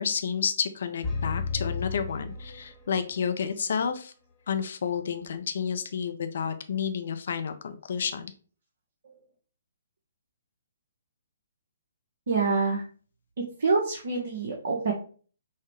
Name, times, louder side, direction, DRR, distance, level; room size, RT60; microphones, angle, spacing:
voice 1, 0.0-4.1 4.5-8.3, left 7 dB, 65° left, 9 dB, 0.5 m, -30 dB
sound 1, 1.0-3.1, left 4 dB, 15° left, 0.8 m, -33 dB
voice 2, 12.3-12.8 13.6-14.9, right 4 dB, 70° right, -1 dB, 0.9 m, -26 dB
5.5 x 2.1 x 3.1 m, 0.41 s
hypercardioid pair, 140°, 0 cm